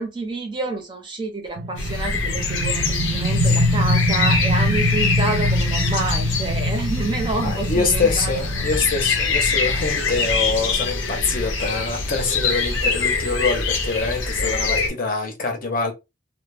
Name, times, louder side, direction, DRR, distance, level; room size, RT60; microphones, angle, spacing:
voice 1, 0.0-8.3, right 2 dB, 25° right, 0.5 m, -28 dB
sound 1, 1.6-13.0, left 1 dB, 75° right, 0.5 m, -25 dB
sound 2, 1.8-14.9, left 4 dB, 80° left, 0.6 m, -24 dB
voice 2, 7.4-15.9, left 4 dB, 45° left, 0.7 m, -24 dB
2.1 x 2.0 x 3.1 m
head